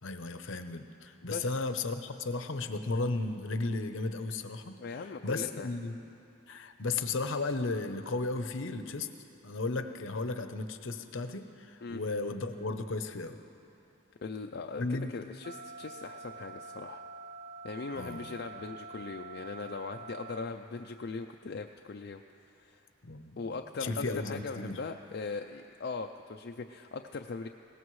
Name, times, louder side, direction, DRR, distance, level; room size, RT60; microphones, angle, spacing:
voice 1, 0.0-4.8 5.2-5.9 6.5-9.1 9.4-13.4 14.8-15.1 17.9-18.3 23.0-23.4 23.8-24.8, left 3 dB, 70° left, 8 dB, 0.8 m, -34 dB
voice 2, 4.8-5.7 11.8-12.0 14.2-17.0 17.6-22.9 23.4-27.5, left 4 dB, 50° left, 4 dB, 0.4 m, -40 dB
sound 1, 15.4-20.4, right 4 dB, 40° right, 0.5 m, -46 dB
21.0 x 18.0 x 3.2 m, 2.7 s
head